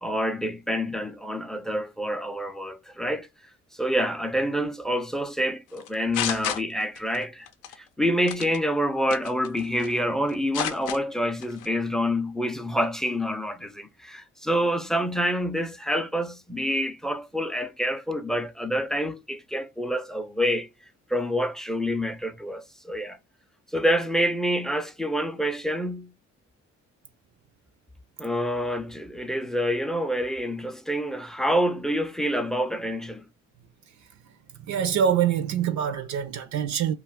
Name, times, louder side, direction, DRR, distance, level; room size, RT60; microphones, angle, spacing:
voice 1, 0.0-3.3 3.8-7.5 8.0-20.7 21.1-23.2 23.7-26.1 28.2-33.2, equal, ahead, 0.4 m, -27 dB
sound 1, 5.8-7.2 7.5-7.7 8.3-8.6 9.1-10.0 10.3-11.0 11.4-11.7, left 10 dB, 90° left, 0.5 m, -31 dB
voice 2, 34.7-36.9, right 8 dB, 65° right, 0.5 m, -25 dB
2.4 x 2.3 x 3.4 m
cardioid pair, 90°, 30 cm